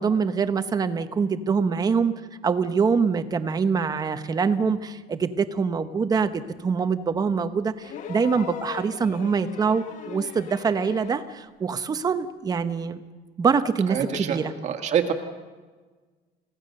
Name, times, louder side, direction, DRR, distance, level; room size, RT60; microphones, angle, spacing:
voice 1, 0.0-2.1 2.4-13.0 13.4-14.5, right 5 dB, 20° right, 11 dB, 1.0 m, -24 dB
sound 1, 7.8-11.4 12.7-12.8, left 9 dB, 45° left, 1.6 m, -39 dB
voice 2, 13.9-15.1, right 8 dB, 45° right, 6 dB, 1.7 m, -26 dB
30.0 x 17.0 x 6.6 m, 1.4 s
cardioid pair, 170°, 17 cm